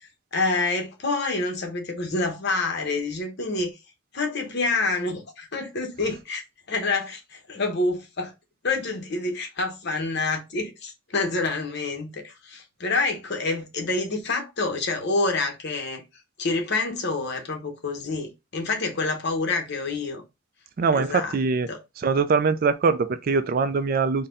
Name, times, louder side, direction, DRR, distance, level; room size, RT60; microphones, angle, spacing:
voice 1, 0.0-3.8 4.1-6.4 6.7-8.3 8.6-16.0 16.4-20.2 20.9-21.3 21.7-21.8, left 3 dB, 55° left, 0.9 m, -27 dB
voice 2, 20.8-21.7 22.0-24.3, right 4 dB, 45° right, 0.3 m, -22 dB
4.1 x 2.2 x 3.7 m
head